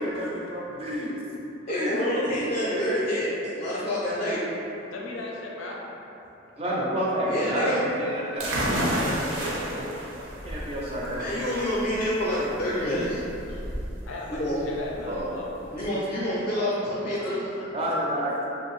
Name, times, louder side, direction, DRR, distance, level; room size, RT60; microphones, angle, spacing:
voice 1, 0.0-1.2 1.7-2.3 2.6-2.9 6.6-9.7 10.4-11.4 15.1-15.3 15.8-15.9 17.7-18.3, equal, 30° right, -5 dB, 0.4 m, -30 dB
voice 2, 1.7-4.4 7.3-7.9 11.1-13.2 13.5-13.6 14.3-14.6 15.7-17.4, left 1 dB, 35° left, -7 dB, 0.4 m, -28 dB
voice 3, 4.9-5.8 9.4-9.9 14.1-15.5 17.2-17.7, left 2 dB, 90° left, -2 dB, 0.5 m, -37 dB
sound 1, 8.4-15.9, right 1 dB, 80° right, 0.5 m, -32 dB
2.6 x 2.6 x 3.0 m, 3.0 s
head